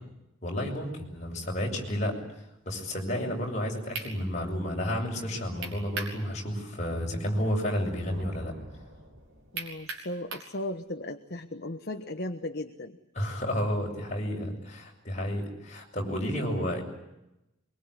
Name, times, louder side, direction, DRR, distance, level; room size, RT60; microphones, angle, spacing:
voice 1, 0.4-2.2 2.7-8.5 13.1-16.8, equal, 35° left, 0 dB, 7.0 m, -31 dB
sound 1, 3.5-3.6 3.9-4.1 5.6-6.2 6.6-6.7 9.5-10.5, right 4 dB, 75° right, 5.8 m, -36 dB
sound 2, 8.1-10.2, equal, 50° right, 6.5 m, -49 dB
voice 2, 9.5-13.0 16.6-16.8, left 1 dB, 50° left, 6 dB, 1.4 m, -36 dB
24.0 x 24.0 x 9.8 m, 0.91 s
head